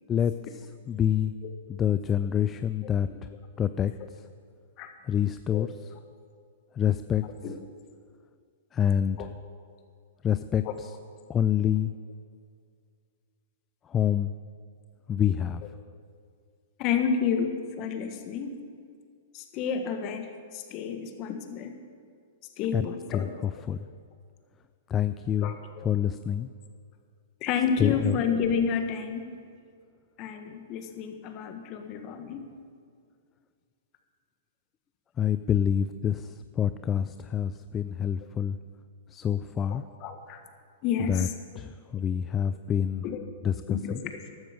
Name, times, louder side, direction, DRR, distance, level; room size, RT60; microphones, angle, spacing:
voice 1, 0.1-1.3 1.7-3.1 3.6-3.9 5.1-5.9 6.8-7.2 8.7-9.2 10.2-10.9 11.3-11.9 13.9-14.3 15.1-15.6 22.7-22.9 23.1-23.9 24.9-25.5 25.8-26.5 27.8-28.2 35.2-38.6 39.1-39.8 41.1-41.3 41.6-43.0 43.4-44.0, left 9 dB, 25° left, 12 dB, 0.4 m, -27 dB
voice 2, 7.2-7.5 9.2-9.3 10.6-10.7 16.8-18.6 19.3-21.7 22.6-23.3 25.4-25.9 27.4-29.3 30.2-32.5 39.7-40.4 40.8-41.3 43.0-43.2 43.7-44.0, left 6 dB, 40° left, 6 dB, 1.6 m, -30 dB
14.5 x 12.0 x 5.3 m, 2.2 s
hypercardioid pair, 120°, 0 cm